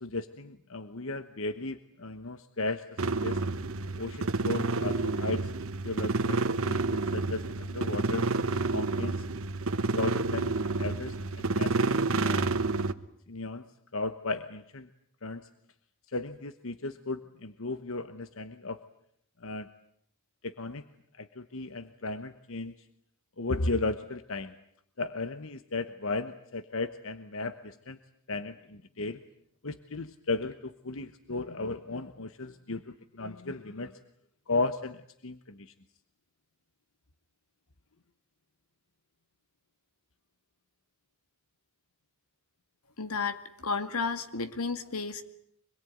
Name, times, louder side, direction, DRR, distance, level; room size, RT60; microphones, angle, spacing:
voice 1, 0.0-3.4 3.9-5.5 5.8-8.3 8.7-9.2 9.9-11.9 12.2-12.5 13.3-13.7 13.9-14.9 15.2-15.5 16.1-18.8 19.4-19.7 20.4-20.8 21.2-22.7 23.4-24.5 25.0-28.0 28.3-29.2 29.6-34.0 34.5-35.7, left 3 dB, 65° left, 11 dB, 1.1 m, -35 dB
sound 1, 3.0-12.9, right 3 dB, 65° right, 1.2 m, -29 dB
voice 2, 43.0-45.2, left 4 dB, 85° left, 9 dB, 2.2 m, -32 dB
25.5 x 21.5 x 9.4 m, 0.70 s
head